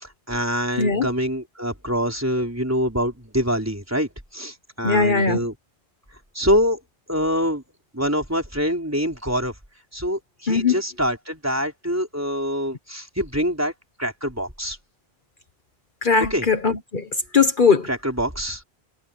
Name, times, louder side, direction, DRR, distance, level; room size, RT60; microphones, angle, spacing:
voice 1, 0.3-5.5 6.3-6.8 7.1-7.6 7.9-9.5 9.9-13.7 14.0-14.8 16.3-16.5 17.9-18.6, equal, 15° right, 4.6 m, -25 dB
voice 2, 0.8-1.1 4.8-5.4 10.5-10.7 16.0-17.1 17.3-17.9, left 5 dB, 55° left, 1.3 m, -19 dB
omnidirectional pair, 1.1 m